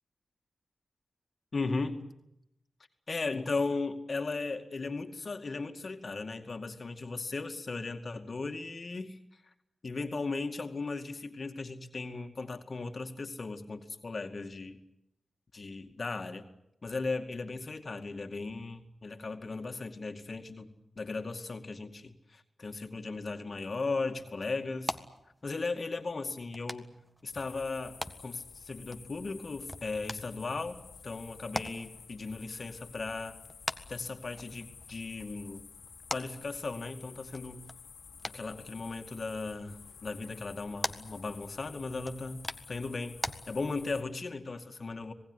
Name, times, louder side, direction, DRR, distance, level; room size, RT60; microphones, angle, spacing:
voice 1, 1.5-2.1 3.1-9.5 9.8-14.8 15.5-16.5 16.8-25.0 25.4-26.9 27.2-33.4 33.9-35.6 36.1-37.7 38.3-43.1 43.5-45.1, left 3 dB, 50° left, 5 dB, 2.3 m, -37 dB
sound 1, 23.5-43.3, equal, 5° right, 1.7 m, -44 dB
sound 2, 27.3-44.0, left 6 dB, 90° left, 2.2 m, -52 dB
26.5 x 18.5 x 9.9 m, 0.84 s
cardioid pair, 55°, 0 cm